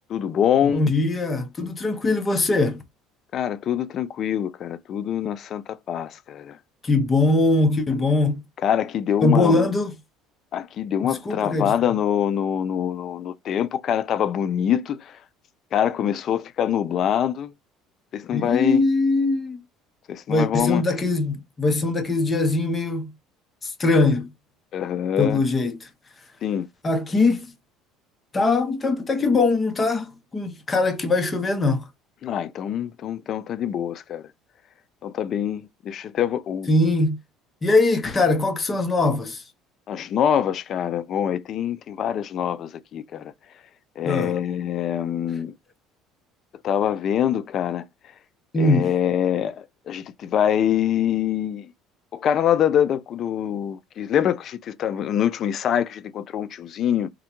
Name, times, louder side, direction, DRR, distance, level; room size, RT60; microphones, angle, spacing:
voice 1, 0.1-0.8 3.3-6.6 8.6-9.6 10.5-15.1 15.7-17.5 18.1-18.8 20.1-20.8 24.7-25.4 26.4-26.7 32.2-34.2 35.0-36.7 39.9-43.3 44.0-45.5 46.6-47.8 48.6-51.7 52.1-57.1, left 9 dB, 45° left, 0.4 m, -24 dB
voice 2, 0.6-2.8 6.8-8.4 9.2-9.9 11.0-11.7 18.3-19.6 20.3-23.1 23.6-24.3 25.2-25.9 26.8-27.6 28.3-31.9 36.7-37.2 37.6-39.4 44.0-44.3 48.5-48.9, left 2 dB, 20° left, 0.7 m, -21 dB
3.6 x 2.1 x 2.9 m
cardioid pair, 120°, 0 cm